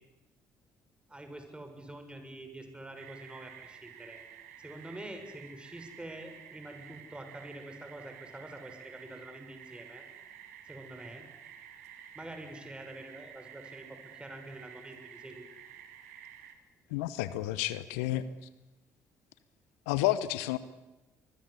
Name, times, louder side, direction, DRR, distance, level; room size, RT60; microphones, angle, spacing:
voice 1, 1.1-4.2 4.6-10.1 10.6-11.3 12.1-15.5, right 1 dB, 10° right, 6 dB, 6.7 m, -46 dB
sound 1, 3.0-16.6, right 9 dB, 80° right, 2.2 m, -51 dB
voice 2, 16.9-18.2 19.9-20.6, left 15 dB, 75° left, 16 dB, 0.9 m, -30 dB
25.0 x 22.0 x 8.3 m, 1.1 s
figure-of-eight pair, 45°, 8 cm